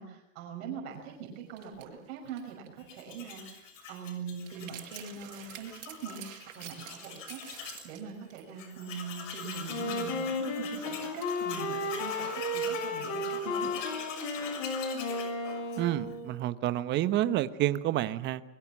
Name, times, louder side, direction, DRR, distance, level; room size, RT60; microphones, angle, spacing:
voice 1, 0.0-6.2 6.5-13.7, right 6 dB, 50° right, 2 dB, 5.8 m, -42 dB
sound 1, 1.3-1.4 1.6-2.9 3.2-3.5 3.8-3.9 4.2-8.5 8.8-8.9 10.6-10.7 11.2-12.7, right 11 dB, 70° right, 5.4 m, -49 dB
Tools, 2.8-7.9 8.3-8.4 8.6-16.2, left 6 dB, 70° left, 6.5 m, -44 dB
Wind instrument woodwind instrument, 9.7-16.4, left 2 dB, 45° left, 4.7 m, -34 dB
voice 2, 15.8-18.4, right 13 dB, 25° right, 13 dB, 1.1 m, -29 dB
23.5 x 22.5 x 7.4 m, 0.83 s
supercardioid pair, 145°, 40 cm